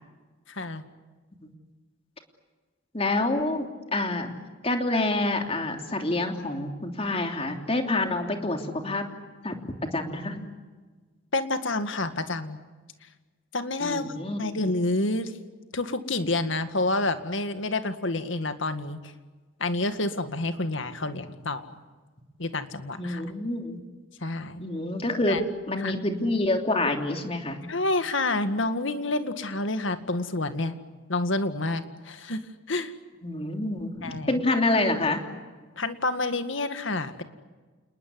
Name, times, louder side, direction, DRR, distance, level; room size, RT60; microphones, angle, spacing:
voice 1, 0.5-0.8 11.3-12.6 13.5-14.1 14.4-15.3 15.7-19.0 19.6-21.7 22.4-23.2 24.2-24.6 25.3-25.4 25.8-25.9 27.7-30.8 31.1-32.4 32.7-32.9 34.0-34.4 35.8-37.2, left 2 dB, 70° left, 9 dB, 2.0 m, -28 dB
voice 2, 2.9-4.3 4.6-9.1 9.4-10.4 13.8-14.6 23.0-23.8 24.6-25.4 25.7-27.6 33.2-35.2, left 2 dB, 30° left, 4 dB, 3.1 m, -27 dB
28.5 x 20.5 x 9.6 m, 1.4 s
head